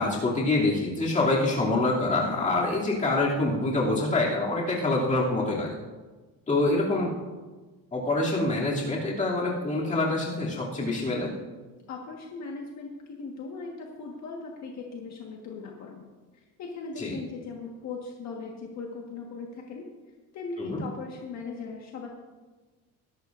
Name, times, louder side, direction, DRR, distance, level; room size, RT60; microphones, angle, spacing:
voice 1, 0.0-5.7 6.5-7.1 7.9-11.3 17.0-17.2 20.6-20.8, left 2 dB, 20° left, -5 dB, 2.8 m, -26 dB
voice 2, 11.9-16.1 16.3-19.9 20.3-22.1, left 4 dB, 55° left, -1 dB, 1.6 m, -39 dB
21.0 x 11.5 x 2.6 m, 1.3 s
cardioid pair, 175°, 34 cm